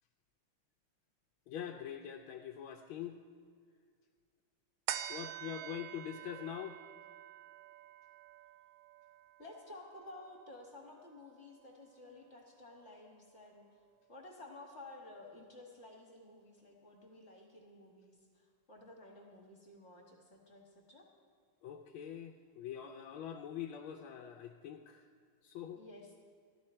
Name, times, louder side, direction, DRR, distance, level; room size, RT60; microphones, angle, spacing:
voice 1, 1.5-3.2 5.1-6.8 21.6-25.0 25.4-25.8, left 9 dB, 80° left, 3 dB, 1.5 m, -44 dB
sound 1, 4.9-11.6 12.1-12.2, right 11 dB, 80° right, 1.4 m, -47 dB
voice 2, 9.4-13.7 14.1-21.1 25.7-26.2, left 2 dB, 35° left, 0 dB, 1.5 m, -53 dB
14.5 x 12.0 x 4.3 m, 2.1 s
omnidirectional pair, 2.2 m